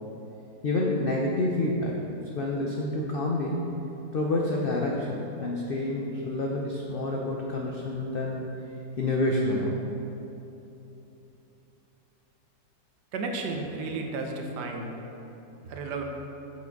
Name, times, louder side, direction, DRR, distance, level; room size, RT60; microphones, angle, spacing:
voice 1, 0.6-2.0 2.2-3.6 4.1-8.4 9.0-9.8, left 2 dB, 90° left, -1 dB, 0.5 m, -28 dB
voice 2, 13.1-15.0 15.6-16.0, right 3 dB, 85° right, 2 dB, 1.4 m, -33 dB
6.6 x 5.2 x 5.2 m, 3.0 s
omnidirectional pair, 1.8 m